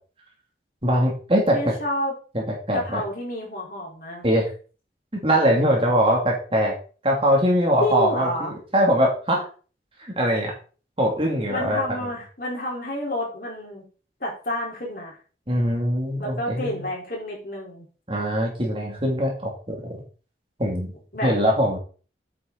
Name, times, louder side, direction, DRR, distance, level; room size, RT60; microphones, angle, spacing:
voice 1, 0.8-1.7 2.3-3.0 4.2-4.5 5.1-6.7 7.0-9.5 10.0-10.5 11.0-11.8 15.5-16.8 18.1-20.0 20.6-20.9 21.2-21.8, equal, 30° right, 0 dB, 2.8 m, -22 dB
voice 2, 1.5-2.1 2.7-4.3 7.8-8.5 11.5-13.8 14.2-15.2 16.2-17.9 21.1-21.3, left 1 dB, 50° left, -2 dB, 4.4 m, -29 dB
8.8 x 7.5 x 4.1 m, 0.38 s
head